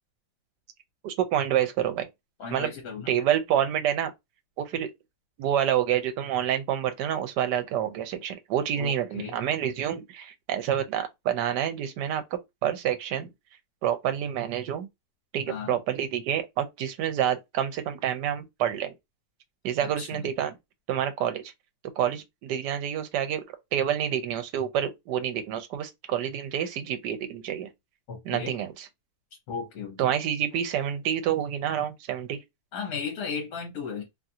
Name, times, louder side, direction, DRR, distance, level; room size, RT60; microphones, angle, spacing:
voice 1, 1.0-2.1 2.5-2.7 3.1-4.1 4.6-4.9 5.4-12.2 12.6-13.3 13.8-14.9 15.3-18.9 19.6-20.6 20.9-21.5 22.0-23.4 23.7-27.7 28.3-28.9 30.0-32.4, right 10 dB, 85° right, 1.2 m, -28 dB
voice 2, 2.4-3.1 8.8-9.4 15.5-15.8 20.0-20.2 28.1-28.6 29.5-30.0 32.7-34.1, left 5 dB, 60° left, 1.3 m, -35 dB
3.0 x 2.4 x 2.7 m
omnidirectional pair, 1.8 m